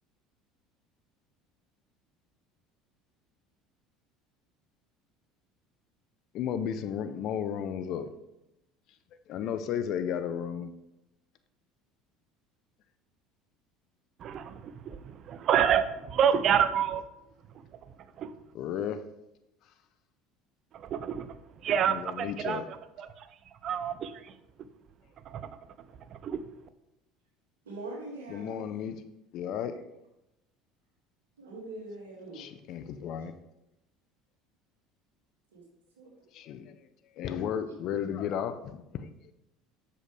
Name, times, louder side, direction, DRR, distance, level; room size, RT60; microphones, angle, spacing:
voice 1, 6.3-8.1 9.3-10.7 18.5-19.0 21.9-22.6 28.3-29.0 29.3-29.8 32.3-33.3 36.3-36.7 37.2-39.3, left 8 dB, 55° left, 10 dB, 0.6 m, -34 dB
voice 2, 14.2-17.0 18.2-18.3 20.7-21.3 21.6-23.3 23.6-24.3 25.3-25.4 26.2-26.4, right 8 dB, 50° right, 12 dB, 0.6 m, -28 dB
voice 3, 27.7-28.6 31.4-32.4 35.5-35.6 36.0-36.1, right 2 dB, 85° right, -2 dB, 2.3 m, -42 dB
7.5 x 6.4 x 3.4 m, 0.89 s
hypercardioid pair, 75°, 0 cm